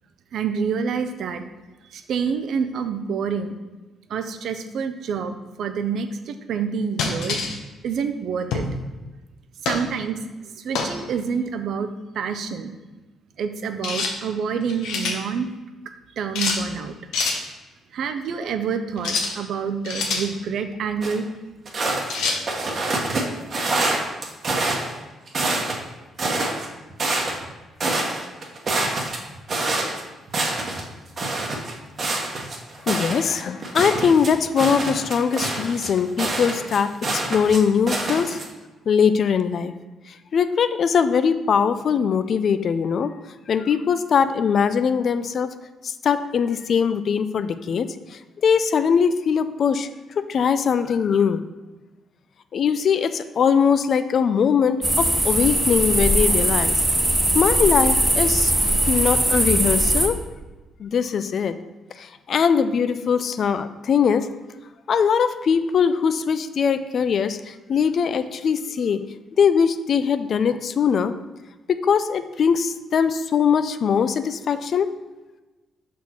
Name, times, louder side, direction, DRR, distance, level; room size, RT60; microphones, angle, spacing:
voice 1, 0.3-1.5 1.9-3.5 4.1-7.4 7.8-8.7 9.6-10.2 10.6-12.7 13.4-15.5 16.2-16.9 17.9-21.3, right 6 dB, 70° right, 9 dB, 0.5 m, -27 dB
sound 1, 7.0-7.6 8.5-8.8 9.7-9.9 10.8-11.0 13.8-14.1 14.6-15.2 16.4-16.6 17.1-17.4 19.0-19.3 19.8-20.3 22.1-22.4, left 4 dB, 85° left, 0.8 m, -25 dB
sound 2, 21.0-21.1 21.7-23.2 23.5-24.9 25.3-25.8 26.2-27.5 27.8-30.0 30.3-30.8 31.2-37.6 37.9-38.4, right 2 dB, 45° right, 1.1 m, -26 dB
voice 2, 32.9-38.4 38.9-39.7 40.3-43.1 43.5-45.5 45.8-47.9 48.4-49.9 50.2-51.4 52.5-56.7 57.3-58.5 58.9-60.2 60.8-61.5 62.0-64.3 64.9-69.0 69.4-71.1 71.7-74.9, left 6 dB, 55° left, 11 dB, 0.4 m, -21 dB
sound 3, 54.8-60.1, right 1 dB, 15° right, 1.0 m, -20 dB
5.6 x 4.3 x 4.4 m, 1.2 s
cardioid pair, 90°, 0 cm